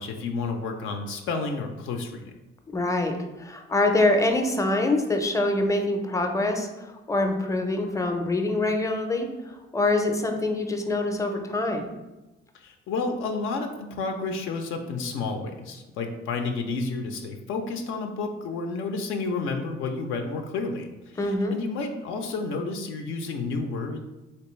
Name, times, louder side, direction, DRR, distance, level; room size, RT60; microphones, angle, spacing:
voice 1, 0.0-2.3 12.5-24.0, left 3 dB, 75° left, 4 dB, 0.4 m, -31 dB
voice 2, 2.7-11.9 21.2-21.6, left 2 dB, 15° left, 4 dB, 0.5 m, -25 dB
3.3 x 2.9 x 3.0 m, 1.0 s
cardioid pair, 85°, 21 cm